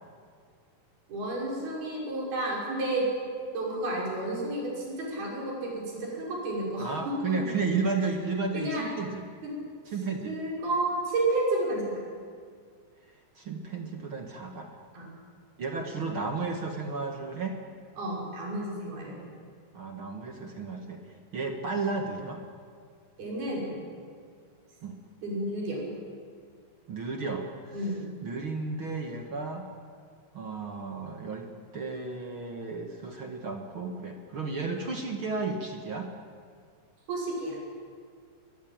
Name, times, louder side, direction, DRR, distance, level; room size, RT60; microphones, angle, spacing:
voice 1, 1.1-3.1 3.5-7.5 8.5-8.9 9.4-9.5 10.3-11.8 14.9-15.1 18.0-19.3 23.2-23.7 25.2-25.8 27.7-28.0 37.1-37.6, right 2 dB, 70° right, -3 dB, 7.9 m, -31 dB
voice 2, 6.8-9.2 9.9-10.4 13.4-14.8 15.6-17.6 19.7-21.0 21.3-22.4 24.8-25.0 26.9-27.7 28.2-29.7 30.3-31.5 31.7-36.1, right 4 dB, 45° right, 3 dB, 1.7 m, -33 dB
22.5 x 22.0 x 8.9 m, 2.1 s
omnidirectional pair, 4.6 m